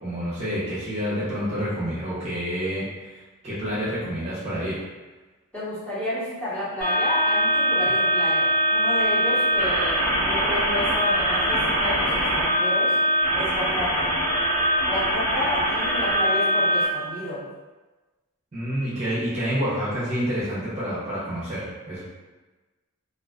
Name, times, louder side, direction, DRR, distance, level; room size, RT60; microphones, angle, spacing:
voice 1, 0.0-4.8 18.5-22.1, equal, 35° right, -9 dB, 0.6 m, -28 dB
voice 2, 5.5-12.9 13.3-14.1 14.9-17.5, left 1 dB, 5° left, -12 dB, 0.9 m, -31 dB
sound 1, 6.8-16.9, equal, 55° left, 1.1 m, -22 dB
2.4 x 2.2 x 2.2 m, 1.2 s
head